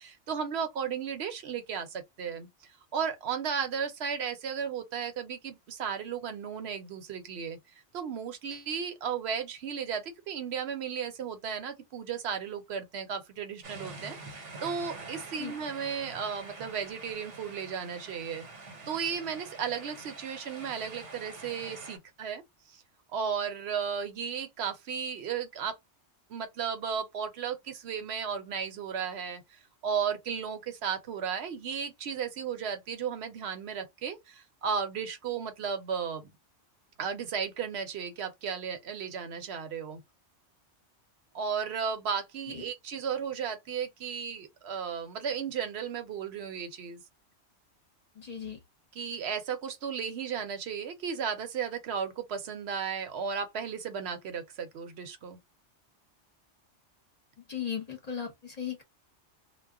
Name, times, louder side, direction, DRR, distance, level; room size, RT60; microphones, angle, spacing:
voice 1, 0.0-2.5 2.9-7.6 7.9-18.4 18.9-22.4 22.7-22.8 23.1-25.8 26.3-36.3 37.0-40.0 41.3-47.0 48.9-55.4, right 7 dB, 65° right, 0.9 m, -34 dB
sound 1, 13.6-22.0, right 3 dB, 85° right, 1.2 m, -46 dB
voice 2, 48.2-48.6 57.5-58.8, left 8 dB, 40° left, 0.7 m, -37 dB
2.3 x 2.1 x 3.5 m
omnidirectional pair, 1.2 m